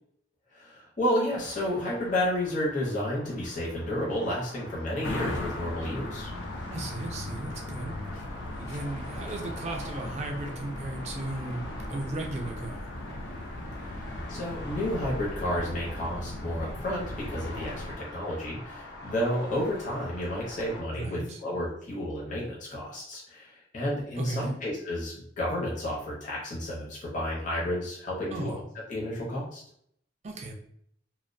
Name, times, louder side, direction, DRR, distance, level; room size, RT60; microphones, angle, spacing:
voice 1, 0.5-6.3 14.3-28.6 28.9-29.6, left 1 dB, 40° left, -4 dB, 0.6 m, -31 dB
sound 1, 1.3-20.8, left 1 dB, 60° left, 1.0 m, -45 dB
sound 2, 5.0-17.9, left 1 dB, 90° left, 0.4 m, -38 dB
voice 2, 6.7-8.0 8.5-12.8 20.9-21.4 24.2-24.5 28.3-28.6 30.2-30.5, right 2 dB, 35° right, 2 dB, 0.4 m, -35 dB
2.4 x 2.0 x 2.5 m, 0.67 s
head